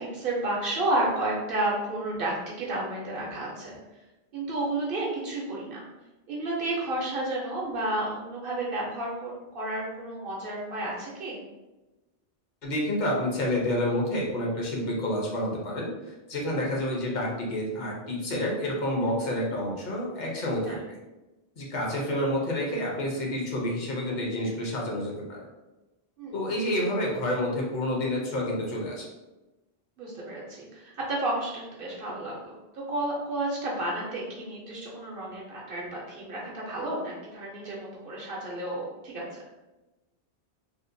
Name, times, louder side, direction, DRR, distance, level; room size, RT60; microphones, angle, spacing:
voice 1, 0.0-3.8 4.3-5.8 6.3-11.4 16.5-16.7 20.6-20.8 26.2-26.7 30.0-39.4, right 1 dB, 65° right, -4 dB, 0.7 m, -32 dB
voice 2, 12.6-21.0 21.6-25.4 26.3-29.0, left 1 dB, 50° left, -3 dB, 0.7 m, -29 dB
2.7 x 2.1 x 2.5 m, 1.1 s
omnidirectional pair, 1.1 m